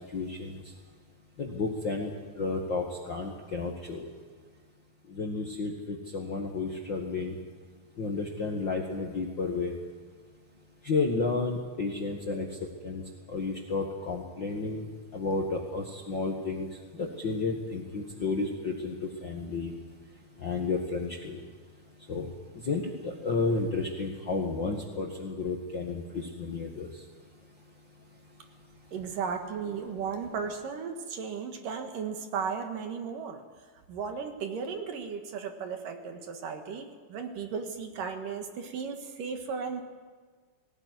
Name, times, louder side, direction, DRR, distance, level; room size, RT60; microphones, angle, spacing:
voice 1, 0.1-0.5 1.4-2.1 2.4-4.1 5.1-7.4 8.0-9.7 10.8-12.5 12.8-13.0 13.3-14.8 15.1-16.7 17.0-18.9 19.2-19.7 20.4-21.4 22.1-22.3 22.6-26.9, left 3 dB, 50° left, 0 dB, 1.5 m, -31 dB
voice 2, 28.9-33.4 33.9-39.8, right 6 dB, 65° right, 5 dB, 3.0 m, -35 dB
19.5 x 18.0 x 9.5 m, 1.5 s
omnidirectional pair, 4.4 m